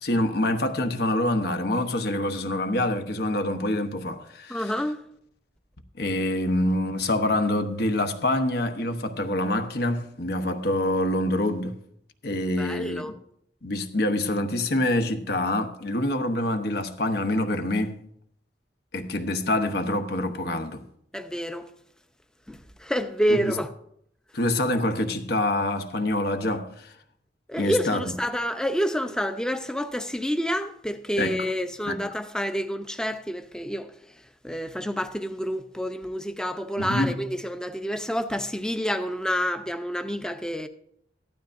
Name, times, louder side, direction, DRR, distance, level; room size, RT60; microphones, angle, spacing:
voice 1, 0.0-4.7 6.0-11.8 12.2-13.2 13.6-18.0 18.9-20.8 24.3-26.9 27.6-28.0 31.2-31.4 31.9-32.0 36.8-37.1, left 1 dB, 60° left, 1.0 m, -26 dB
voice 2, 4.5-5.0 12.6-13.1 21.1-21.7 22.5-23.7 27.5-33.9 34.4-40.7, equal, 5° left, 0.7 m, -28 dB
15.5 x 12.0 x 2.6 m
head